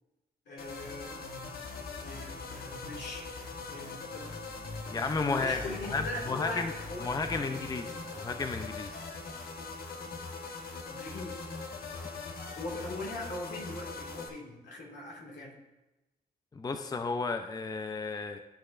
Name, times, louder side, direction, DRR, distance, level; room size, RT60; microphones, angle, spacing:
voice 1, 0.5-1.1 2.0-3.3 3.7-4.3 4.8-7.6 10.9-11.4 12.6-15.5, left 2 dB, 85° left, -2 dB, 2.2 m, -41 dB
sound 1, 0.6-14.3, left 3 dB, 60° left, 1.2 m, -41 dB
voice 2, 4.9-5.6 5.9-6.7 7.0-9.0 16.5-18.4, left 4 dB, 20° left, 7 dB, 0.5 m, -33 dB
12.5 x 6.4 x 2.5 m, 1.0 s
cardioid pair, 80°, 17 cm